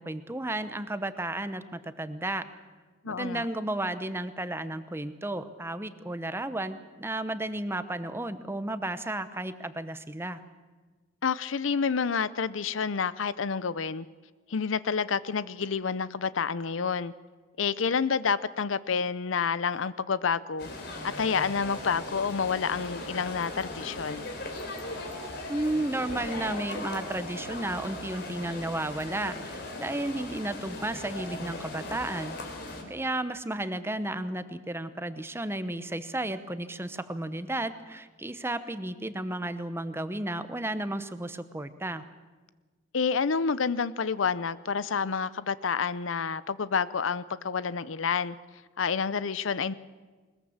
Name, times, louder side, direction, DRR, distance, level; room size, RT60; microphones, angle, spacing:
voice 1, 0.0-2.4 3.0-10.4 25.5-32.4 32.9-42.0, right 1 dB, 15° right, 0.9 m, -33 dB
voice 2, 3.0-3.5 11.2-14.1 14.5-17.1 17.6-20.7 21.0-24.3 32.8-32.9 42.9-48.4 48.8-49.7, left 6 dB, 85° left, 0.6 m, -29 dB
sound 1, 20.6-32.8, left 2 dB, 60° left, 3.4 m, -38 dB
20.5 x 20.5 x 7.3 m
head